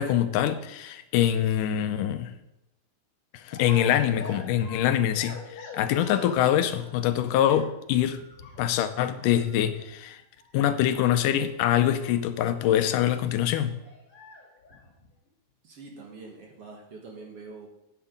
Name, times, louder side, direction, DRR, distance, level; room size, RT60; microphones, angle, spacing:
voice 1, 0.0-2.3 3.3-8.2 8.6-10.2 10.5-13.8, left 11 dB, 85° left, 11 dB, 2.3 m, -24 dB
sound 1, 3.5-7.2 7.4-12.7 13.0-13.1 13.4-15.3, left 3 dB, 45° left, 3.5 m, -46 dB
voice 2, 15.6-17.7, right 3 dB, 55° right, 1 dB, 2.1 m, -44 dB
9.6 x 8.5 x 5.2 m, 0.88 s
omnidirectional pair, 3.7 m